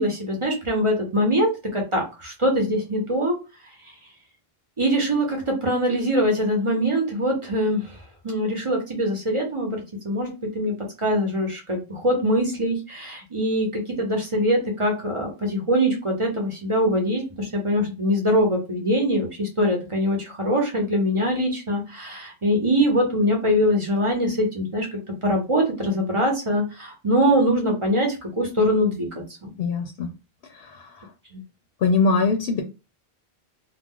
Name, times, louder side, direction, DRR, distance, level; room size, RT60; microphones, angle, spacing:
voice 1, 0.0-3.4 4.8-8.0 8.2-24.9 25.2-29.1 29.4-29.5 31.3-31.4, equal, 35° right, 0 dB, 0.8 m, -23 dB
voice 2, 29.6-30.1 30.5-31.1 31.8-32.6, left 4 dB, 75° left, 3 dB, 0.8 m, -22 dB
2.4 x 2.1 x 3.6 m, 0.29 s
omnidirectional pair, 1.0 m